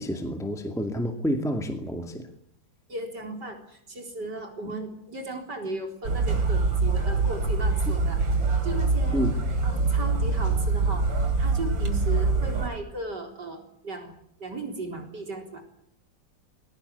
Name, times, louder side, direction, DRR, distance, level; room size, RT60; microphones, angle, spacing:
voice 1, 0.0-2.3 9.1-9.3, equal, ahead, 5 dB, 2.1 m, -29 dB
voice 2, 2.9-8.2 8.6-9.2 9.6-11.1 11.4-14.1 14.4-15.6, right 2 dB, 60° right, 4 dB, 4.7 m, -36 dB
sound 1, 6.0-12.7, right 3 dB, 90° right, 3.8 m, -24 dB
22.0 x 18.0 x 9.6 m, 0.70 s
omnidirectional pair, 2.0 m